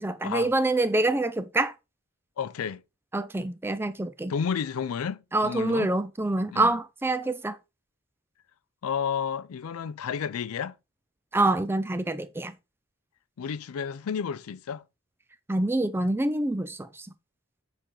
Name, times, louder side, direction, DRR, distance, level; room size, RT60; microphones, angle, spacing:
voice 1, 0.0-1.7 3.1-4.3 5.3-7.6 11.3-12.5 15.5-17.1, right 2 dB, 10° right, 0.4 m, -26 dB
voice 2, 2.4-2.8 4.3-5.9 6.5-6.7 8.8-10.7 13.4-14.8, left 7 dB, 85° left, 0.4 m, -31 dB
6.8 x 4.5 x 3.7 m
head